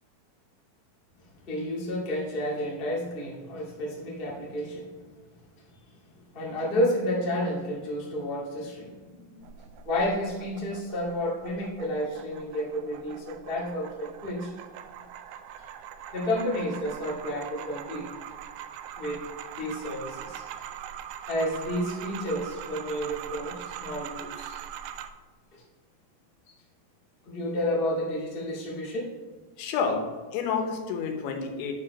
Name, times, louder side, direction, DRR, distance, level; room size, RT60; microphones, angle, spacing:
voice 1, 1.5-4.9 6.3-9.4 9.8-14.5 16.1-18.1 19.0-19.2 19.6-20.4 21.3-24.6 25.5-25.6 27.2-29.1, equal, 45° left, -5 dB, 0.6 m, -31 dB
sound 1, 9.4-25.1, right 9 dB, 85° right, 2.8 m, -42 dB
voice 2, 29.6-30.0 30.3-31.7, left 5 dB, 85° left, 4 dB, 3.4 m, -29 dB
9.4 x 4.9 x 4.7 m, 1.4 s
omnidirectional pair, 5.1 m